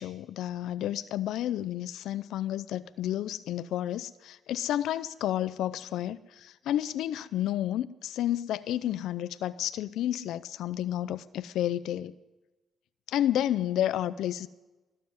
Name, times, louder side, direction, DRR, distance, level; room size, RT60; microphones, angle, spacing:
voice 1, 0.0-12.1 13.1-14.5, left 12 dB, 85° left, 14 dB, 0.5 m, -31 dB
20.5 x 7.6 x 7.8 m, 1.1 s
cardioid pair, 90°, 0 cm